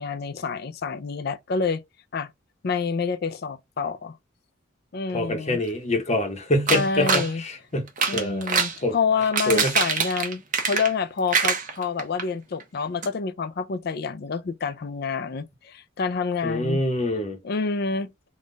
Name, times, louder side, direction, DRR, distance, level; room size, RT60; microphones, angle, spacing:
voice 1, 0.0-1.8 2.1-2.3 2.6-4.2 4.9-5.6 6.7-7.4 8.1-16.8 17.4-18.1, left 5 dB, 55° left, 0.4 m, -28 dB
voice 2, 5.1-8.5 8.8-8.9 9.5-9.7 16.4-17.4, left 1 dB, 35° left, 1.0 m, -25 dB
sound 1, 6.7-7.3 7.9-8.8 9.2-11.0 11.3-12.2 12.6-12.7 13.0-13.1, right 5 dB, 45° right, 0.9 m, -24 dB
3.7 x 2.4 x 3.9 m
head